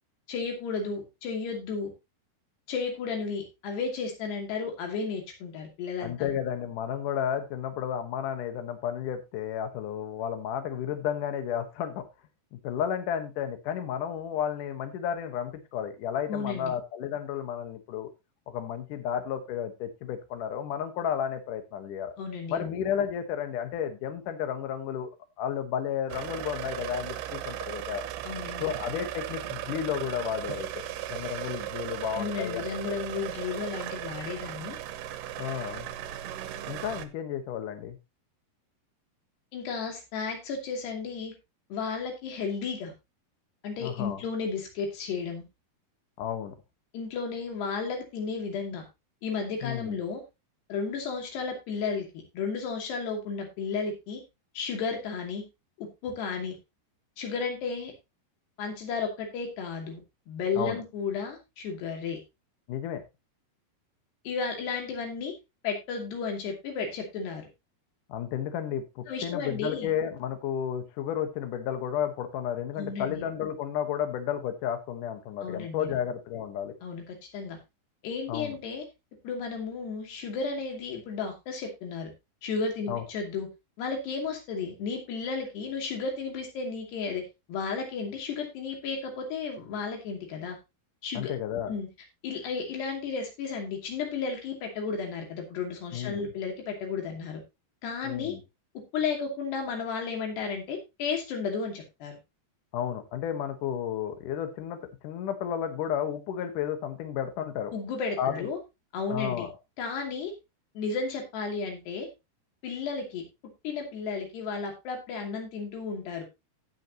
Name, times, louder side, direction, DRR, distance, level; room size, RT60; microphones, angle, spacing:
voice 1, 0.3-1.9 2.7-6.3 16.3-16.7 22.2-22.7 28.2-28.7 32.2-34.8 39.5-41.3 41.7-42.9 43.6-45.5 46.9-48.8 49.2-50.2 50.7-54.2 54.5-55.4 55.8-56.6 57.2-57.9 58.6-60.0 60.3-62.2 64.2-65.3 65.6-67.5 69.1-69.9 72.8-73.2 75.4-76.0 76.8-77.6 78.0-78.8 79.2-82.1 82.4-83.5 83.8-87.2 87.5-90.6 91.0-91.3 91.7-91.9 92.2-97.4 97.8-98.4 98.9-102.2 107.7-108.6 108.9-109.5 109.8-110.3 110.8-112.1 112.6-113.2 113.6-116.2, left 5 dB, 85° left, 2 dB, 4.8 m, -33 dB
voice 2, 6.0-12.1 12.5-18.1 18.5-22.1 22.5-25.1 25.4-28.0 28.6-30.8 31.1-32.8 35.4-35.9 36.7-38.0 43.8-44.2 46.2-46.5 49.6-50.0 60.5-60.8 62.7-63.0 68.1-76.7 78.3-78.6 82.9-83.0 91.1-91.7 95.9-96.3 98.0-98.4 102.7-107.7 108.2-108.5 109.1-109.5, left 9 dB, 65° left, 8 dB, 2.5 m, -32 dB
sound 1, 26.1-37.1, right 13 dB, 80° right, 2.9 m, -37 dB
16.5 x 6.2 x 2.9 m, 0.24 s
omnidirectional pair, 4.6 m